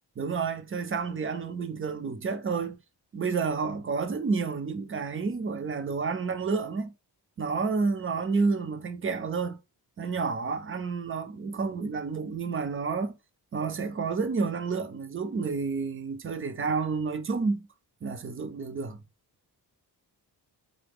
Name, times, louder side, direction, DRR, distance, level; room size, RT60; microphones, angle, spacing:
voice 1, 0.2-2.8 3.1-6.9 7.4-9.6 10.0-13.1 13.5-17.7 18.0-19.0, right 4 dB, 35° right, 0.4 m, -30 dB
3.9 x 3.7 x 3.4 m
wide cardioid pair, 160°, 40 cm